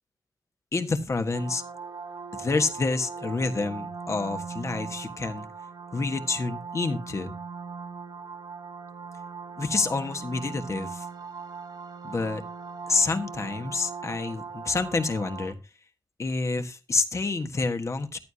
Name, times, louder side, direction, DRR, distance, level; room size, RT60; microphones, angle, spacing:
voice 1, 0.7-1.6 2.3-5.4 5.9-7.3 9.6-11.0 12.0-12.4 12.9-15.6 16.2-18.2, left 3 dB, 45° left, 7 dB, 1.4 m, -28 dB
sound 1, 1.3-15.5, right 5 dB, 75° right, 2.4 m, -39 dB
14.5 x 11.5 x 2.8 m, 0.26 s
wide cardioid pair, 145°, 7 cm